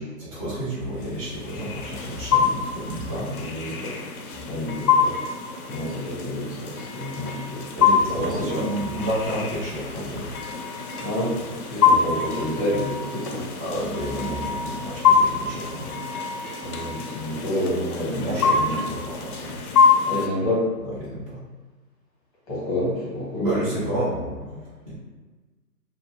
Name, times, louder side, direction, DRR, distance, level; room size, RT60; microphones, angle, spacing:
voice 1, 0.2-3.3 7.7-10.4 13.6-16.0 18.1-19.6 20.8-21.4 23.4-25.0, right 1 dB, 20° right, -10 dB, 0.6 m, -30 dB
sound 1, 1.0-20.3, left 6 dB, 65° left, 0.5 m, -25 dB
voice 2, 3.3-3.9 4.4-5.1 5.7-7.6 8.1-8.7 11.0-13.5 16.6-18.8 20.0-20.7 22.5-23.7, left 1 dB, 25° left, -6 dB, 0.8 m, -28 dB
2.5 x 2.1 x 2.9 m, 1.3 s
hypercardioid pair, 145°, 48 cm